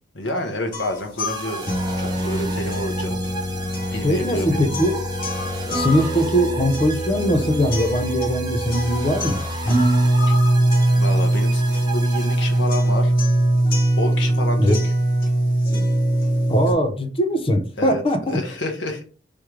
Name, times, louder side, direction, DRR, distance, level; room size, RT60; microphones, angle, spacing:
voice 1, 0.1-1.7 2.0-3.2 3.9-4.6 10.3-10.4 10.9-13.1 14.0-14.9 17.8-18.0 18.3-19.0, left 1 dB, 80° left, 1.2 m, -29 dB
sound 1, 0.7-16.7, right 1 dB, 50° left, 1.3 m, -22 dB
sound 2, 1.2-13.0, right 3 dB, 25° right, 0.8 m, -35 dB
voice 2, 4.0-5.0 5.7-9.4 14.6-14.8 16.5-18.4, equal, 30° left, 0.6 m, -21 dB
3.5 x 3.2 x 4.6 m
head